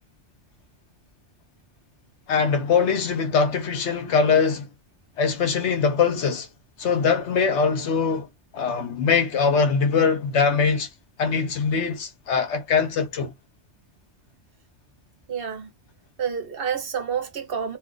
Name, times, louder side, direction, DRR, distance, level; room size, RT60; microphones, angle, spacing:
voice 1, 2.3-4.7 5.2-6.5 6.8-8.3 8.5-10.9 11.2-13.3, left 5 dB, 75° left, 1.1 m, -22 dB
voice 2, 15.3-15.7 16.2-17.8, right 7 dB, 55° right, 1.0 m, -29 dB
2.6 x 2.4 x 3.8 m
omnidirectional pair, 1.2 m